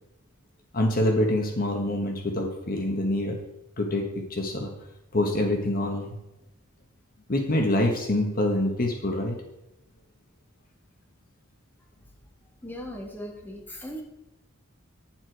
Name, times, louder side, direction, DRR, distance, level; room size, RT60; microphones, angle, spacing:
voice 1, 0.7-3.4 3.8-4.7 5.1-6.2 7.3-9.3, left 1 dB, 45° left, 3 dB, 1.2 m, -25 dB
voice 2, 12.6-14.0, equal, 10° left, 0 dB, 1.6 m, -38 dB
9.7 x 7.4 x 4.6 m, 0.90 s
head